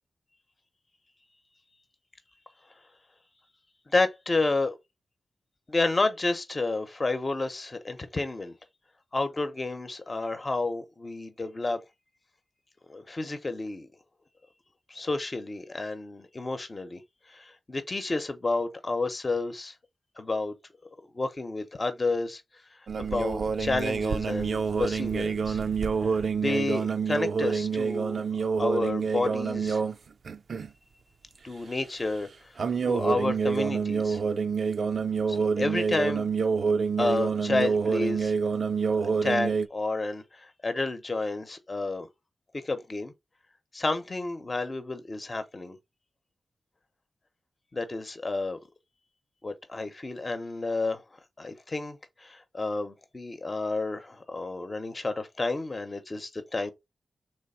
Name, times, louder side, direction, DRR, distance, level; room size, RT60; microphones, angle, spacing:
voice 1, 3.9-4.8 5.7-8.6 9.1-11.8 12.9-13.9 14.9-17.0 17.3-19.7 20.2-20.5 21.1-22.4 22.7-25.6 26.0-28.2 28.6-29.8 31.4-32.6 32.8-34.2 35.3-36.3 37.0-38.3 39.0-42.1 42.5-43.1 43.7-45.8 47.7-48.6 49.4-51.0 51.4-56.7, left 3 dB, 40° left, 0.8 m, -30 dB
sound 1, 22.9-30.0 30.3-30.7 32.6-39.7, right 5 dB, 70° right, 0.4 m, -27 dB
3.3 x 3.2 x 4.2 m
cardioid pair, 50°, 0 cm